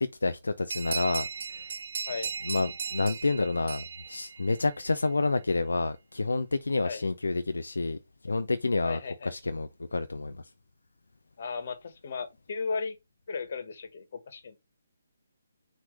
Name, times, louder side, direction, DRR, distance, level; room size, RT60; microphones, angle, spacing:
voice 1, 0.0-1.6 2.5-8.0 8.2-10.4, left 3 dB, 85° left, 0.5 m, -29 dB
sound 1, 0.7-4.9, right 6 dB, 55° right, 0.6 m, -37 dB
voice 2, 8.8-9.4 11.4-13.0 13.3-14.6, left 4 dB, 55° left, 1.6 m, -35 dB
6.3 x 3.2 x 5.1 m
hypercardioid pair, 155°, 0 cm